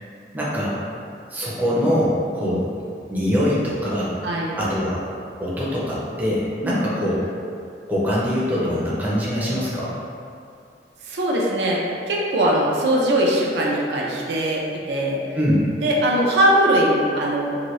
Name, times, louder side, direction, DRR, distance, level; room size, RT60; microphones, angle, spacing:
voice 1, 0.3-0.8 1.3-2.7 3.1-4.2 4.6-5.0 5.4-7.3 7.9-9.9 15.3-15.6, equal, 10° right, -8 dB, 0.5 m, -23 dB
voice 2, 4.2-4.6 6.6-7.0 11.0-11.8 12.1-15.2 15.8-17.6, right 1 dB, 70° right, -3 dB, 0.5 m, -21 dB
2.8 x 2.6 x 3.0 m, 2.4 s
head